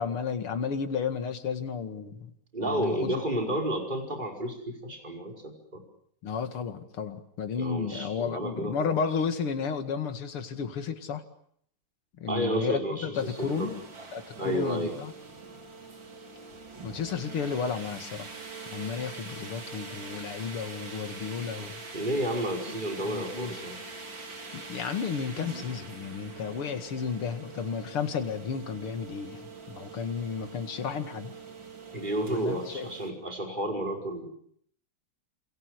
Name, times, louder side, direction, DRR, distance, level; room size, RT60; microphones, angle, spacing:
voice 1, 0.0-2.3 2.6-3.1 6.2-11.2 12.2-13.8 14.1-15.1 16.8-18.4 18.7-21.8 23.1-23.6 24.5-31.3 32.3-32.9, left 6 dB, 85° left, 8 dB, 2.9 m, -33 dB
voice 2, 2.5-5.8 7.5-9.0 12.3-13.7 14.4-14.9 21.9-23.8 31.9-34.3, right 1 dB, 20° right, 2 dB, 5.2 m, -31 dB
sound 1, 13.2-33.1, right 4 dB, 60° right, 4.1 m, -44 dB
28.5 x 27.0 x 6.5 m, 0.66 s
omnidirectional pair, 2.4 m